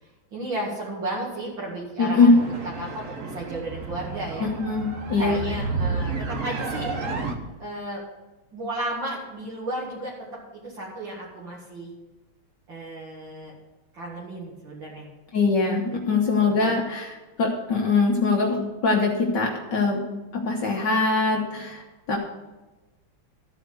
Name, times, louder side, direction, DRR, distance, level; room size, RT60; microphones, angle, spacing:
voice 1, 0.0-2.4 2.6-4.5 5.2-7.0 7.6-8.0 8.5-10.1 10.5-11.9 12.7-13.5 13.9-15.1 15.9-16.7, right 1 dB, 65° right, -6 dB, 2.7 m, -34 dB
voice 2, 2.0-2.3 4.4-5.4 15.3-17.1 17.4-20.0 20.3-22.2, left 3 dB, 60° left, 0 dB, 1.8 m, -22 dB
sound 1, 2.3-7.3, right 3 dB, 45° right, 1.2 m, -31 dB
13.5 x 4.9 x 8.0 m, 1.1 s
omnidirectional pair, 2.3 m